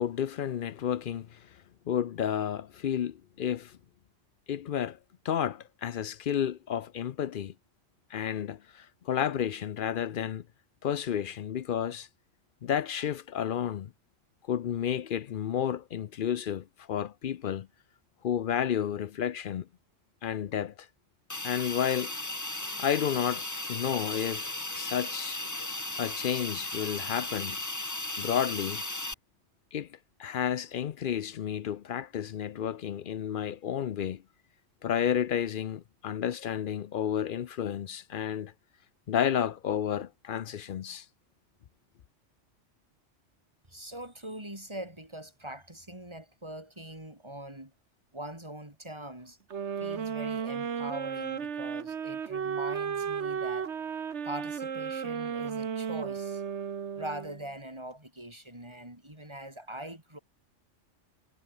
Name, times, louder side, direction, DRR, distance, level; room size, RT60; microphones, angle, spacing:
voice 1, 0.0-1.5 1.9-3.8 4.5-5.0 5.2-7.5 8.1-10.4 10.8-12.1 12.6-13.9 14.5-17.7 18.2-19.7 20.2-20.7 21.4-22.1 22.8-25.4 26.0-27.6 28.2-28.8 29.7-34.2 34.8-38.5 39.1-41.1, left 9 dB, 55° left, 0.6 m, -31 dB
Hiss, 21.3-29.1, left 2 dB, 15° left, 1.2 m, -36 dB
voice 2, 43.7-47.7 48.1-49.4 49.8-53.7 54.2-56.4 56.9-60.2, right 1 dB, 20° right, 4.7 m, -42 dB
sound 1, 49.5-57.5, right 7 dB, 65° right, 1.5 m, -34 dB
omnidirectional pair, 1.3 m